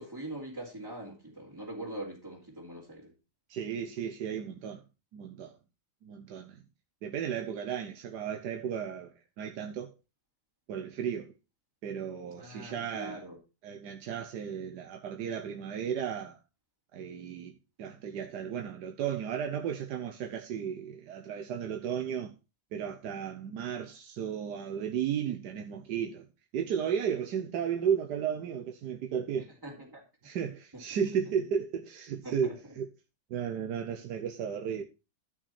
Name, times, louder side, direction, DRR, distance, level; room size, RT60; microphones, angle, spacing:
voice 1, 0.0-3.1 12.4-13.4 29.6-30.0 32.2-32.5, right 1 dB, 10° right, 2.7 m, -42 dB
voice 2, 3.5-4.8 5.1-5.6 6.0-6.6 7.0-9.9 10.7-11.3 11.8-13.2 13.6-16.4 16.9-22.3 22.7-26.3 26.5-29.5 30.2-32.9 33.3-34.8, right 8 dB, 85° right, 1.5 m, -34 dB
13.5 x 6.0 x 4.2 m
omnidirectional pair, 1.7 m